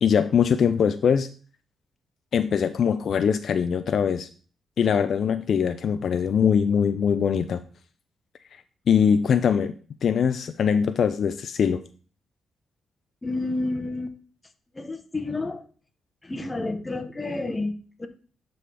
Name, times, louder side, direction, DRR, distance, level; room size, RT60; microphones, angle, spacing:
voice 1, 0.0-1.3 2.3-4.3 4.8-7.6 8.5-8.6 8.9-9.7 10.0-11.8, left 7 dB, 65° left, 0.4 m, -22 dB
voice 2, 13.2-14.2 14.7-15.6 16.2-18.1, left 2 dB, 20° left, 1.0 m, -30 dB
11.0 x 3.9 x 3.4 m
cardioid pair, 75°, 0 cm